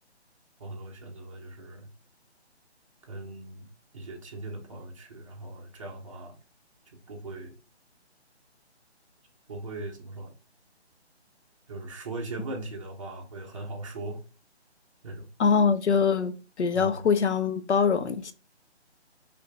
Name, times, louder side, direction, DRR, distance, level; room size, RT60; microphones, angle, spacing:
voice 1, 0.6-1.9 3.0-3.7 3.9-6.4 6.9-7.6 9.5-10.3 11.7-14.2 15.0-15.3 16.7-17.1, right 2 dB, 30° right, 0.6 m, -39 dB
voice 2, 15.4-18.3, left 6 dB, 80° left, 0.6 m, -24 dB
4.3 x 2.7 x 3.1 m
figure-of-eight pair, 155°, 34 cm